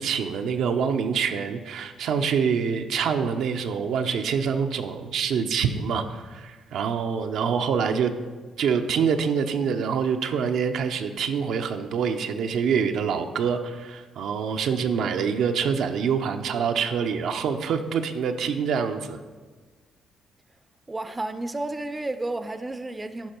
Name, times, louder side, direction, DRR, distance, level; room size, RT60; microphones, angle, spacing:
voice 1, 0.0-8.1 8.6-19.2, right 6 dB, 75° right, 6 dB, 0.6 m, -26 dB
voice 2, 20.9-23.3, right 2 dB, 20° right, 10 dB, 0.5 m, -31 dB
11.5 x 4.6 x 4.4 m, 1.4 s
cardioid pair, 90°, 0 cm